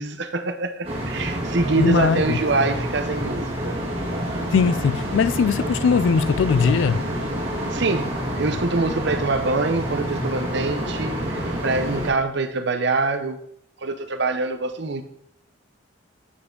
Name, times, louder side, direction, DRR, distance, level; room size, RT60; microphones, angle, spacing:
voice 1, 0.0-3.8 7.7-13.4 13.8-15.0, right 3 dB, 55° right, 0.7 m, -25 dB
sound 1, 0.8-12.1, equal, 30° right, 2.2 m, -28 dB
voice 2, 1.8-2.4 4.5-7.0, left 5 dB, 65° left, 0.3 m, -20 dB
8.0 x 5.7 x 3.8 m
head